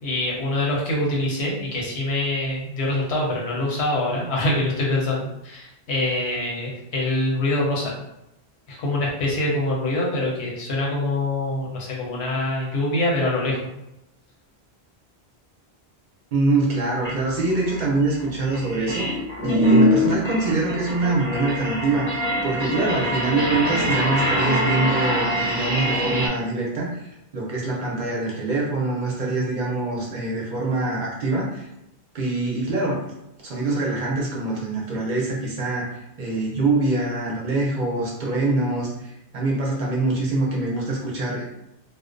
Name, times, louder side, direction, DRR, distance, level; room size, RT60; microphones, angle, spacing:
voice 1, 0.0-7.9 8.7-13.6, left 1 dB, 85° left, -3 dB, 1.0 m, -24 dB
voice 2, 16.3-31.7 32.1-33.0 33.4-41.4, right 2 dB, 55° right, -3 dB, 0.6 m, -24 dB
sound 1, 17.0-17.1 17.6-26.3, equal, 15° left, 0.5 m, -23 dB
2.4 x 2.1 x 2.4 m, 0.86 s
omnidirectional pair, 1.1 m